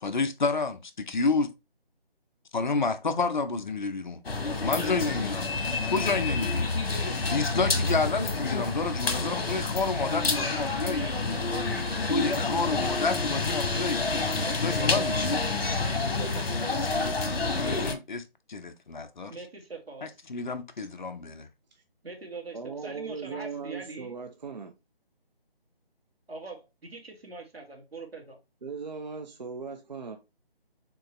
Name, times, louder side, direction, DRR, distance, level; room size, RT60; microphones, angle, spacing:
voice 1, 0.0-1.5 2.5-4.2 4.6-5.5 5.9-6.7 7.3-11.1 12.1-14.1 14.4-15.4 16.6-19.3 20.0-21.5, left 4 dB, 50° left, 0.7 m, -30 dB
sound 1, 4.2-17.9, left 3 dB, 65° left, 1.2 m, -28 dB
voice 2, 10.8-12.1 14.4-15.2 15.8-16.7 19.3-20.1 20.8-20.9 22.0-24.2 26.3-28.4, right 3 dB, 80° right, 1.8 m, -42 dB
voice 3, 22.5-24.7 28.6-30.2, right 5 dB, 45° right, 0.5 m, -38 dB
4.6 x 3.8 x 3.0 m
figure-of-eight pair, 160°, 30 cm